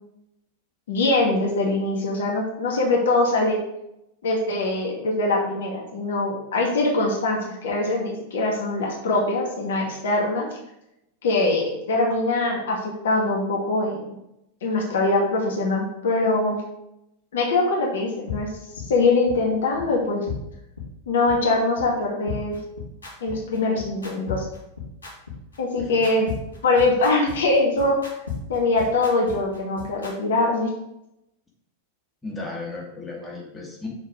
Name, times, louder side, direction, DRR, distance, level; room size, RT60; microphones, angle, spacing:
voice 1, 0.9-3.6 4.2-10.5 11.2-14.2 14.6-16.6 17.3-18.5 18.9-20.3 21.1-22.6 23.2-24.5 25.6-26.3 26.6-27.9 28.5-30.7, left 2 dB, 60° left, -1 dB, 1.9 m, -23 dB
sound 1, 18.3-18.4 18.8-18.9 19.3-19.4 19.8-19.9 20.3-20.4 20.8-20.9 21.3-21.4 21.8-21.9 22.3-30.1, left 7 dB, 75° left, 2.3 m, -34 dB
voice 2, 32.2-33.9, left 3 dB, 10° left, -3 dB, 2.2 m, -35 dB
6.4 x 5.5 x 5.1 m, 0.83 s
figure-of-eight pair, 90°, 0 cm